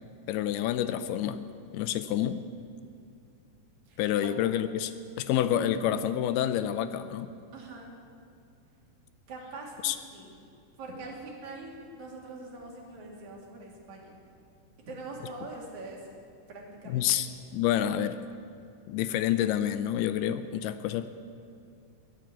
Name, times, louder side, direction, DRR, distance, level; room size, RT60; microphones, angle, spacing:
voice 1, 0.3-1.4 1.7-2.4 4.0-4.9 5.2-7.3 9.8-10.0 16.9-17.3 17.5-18.2 18.9-21.1, left 11 dB, 80° left, 11 dB, 2.4 m, -28 dB
voice 2, 3.9-4.3 7.5-7.9 9.3-10.3 10.8-14.2 14.9-16.1 16.5-17.3, right 2 dB, 50° right, -2 dB, 3.6 m, -43 dB
21.5 x 7.5 x 8.4 m, 2.5 s
omnidirectional pair, 4.8 m